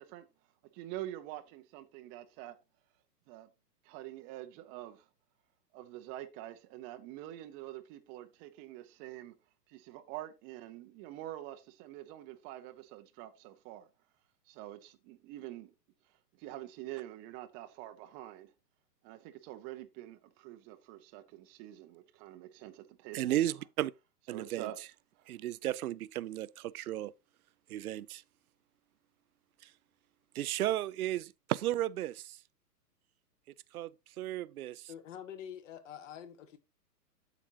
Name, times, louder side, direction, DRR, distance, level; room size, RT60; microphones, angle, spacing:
voice 1, 0.8-2.6 3.3-3.5 3.9-5.0 5.7-9.3 9.7-13.8 14.5-15.7 16.4-18.5 19.0-23.2 24.3-24.8, right 14 dB, 15° right, 0.7 m, -46 dB
voice 2, 23.1-23.9 24.3-24.9 25.3-27.1 27.7-28.2 29.6-29.7 30.3-32.4 33.7-34.9, right 13 dB, 60° right, 0.6 m, -34 dB
voice 3, 34.9-36.6, left 9 dB, 50° left, 1.7 m, -46 dB
8.9 x 7.1 x 2.8 m
hypercardioid pair, 135°, 49 cm